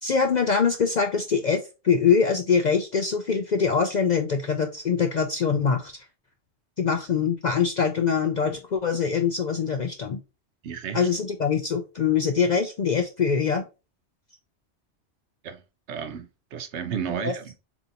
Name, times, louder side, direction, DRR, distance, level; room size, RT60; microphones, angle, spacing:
voice 1, 0.0-6.0 6.8-10.2 10.9-13.6 17.2-17.3, left 6 dB, 55° left, 0.5 m, -23 dB
voice 2, 10.6-11.1 15.4-15.6 15.9-17.6, right 7 dB, 70° right, 1.0 m, -33 dB
6.8 x 2.7 x 2.8 m
omnidirectional pair, 1.2 m